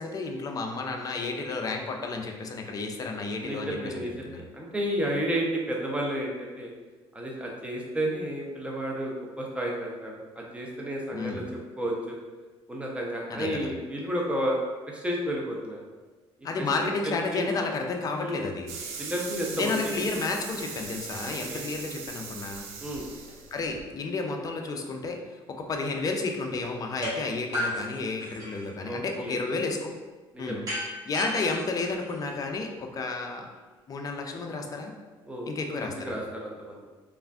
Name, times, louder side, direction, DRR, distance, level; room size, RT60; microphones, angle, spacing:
voice 1, 0.0-4.4 11.1-11.5 13.3-13.7 16.4-18.7 19.5-22.7 23.5-25.2 25.5-29.9 30.4-30.6 31.1-33.5 33.9-34.9 35.5-36.1, left 3 dB, 35° left, 3 dB, 0.4 m, -31 dB
voice 2, 3.4-6.7 7.1-11.4 11.8-12.2 12.7-14.6 14.9-15.8 16.4-16.5 16.8-17.5 18.2-18.5 19.0-20.2 21.5-21.7 22.8-23.1 28.8-29.4 30.3-30.6 35.3-35.5 35.8-36.8, equal, 10° right, -2 dB, 0.6 m, -32 dB
sound 1, 18.7-23.8, right 5 dB, 90° right, 0.4 m, -39 dB
sound 2, 27.0-27.2 27.5-28.7 30.7-32.6, equal, 35° right, 1.5 m, -34 dB
3.3 x 2.4 x 2.3 m, 1.3 s
cardioid pair, 95°, 11 cm